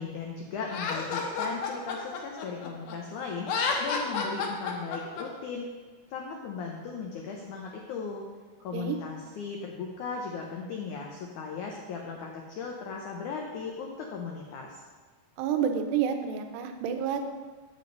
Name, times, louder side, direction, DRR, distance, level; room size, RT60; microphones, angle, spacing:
voice 1, 0.0-5.7 6.1-8.2 8.6-14.8, left 5 dB, 85° left, 1 dB, 1.7 m, -37 dB
Laughter, 0.7-3.0 3.4-5.2, left 5 dB, 70° left, 2.3 m, -30 dB
voice 2, 15.4-17.3, right 7 dB, 90° right, 6 dB, 2.9 m, -29 dB
7.9 x 7.8 x 5.3 m, 1.4 s
omnidirectional pair, 4.7 m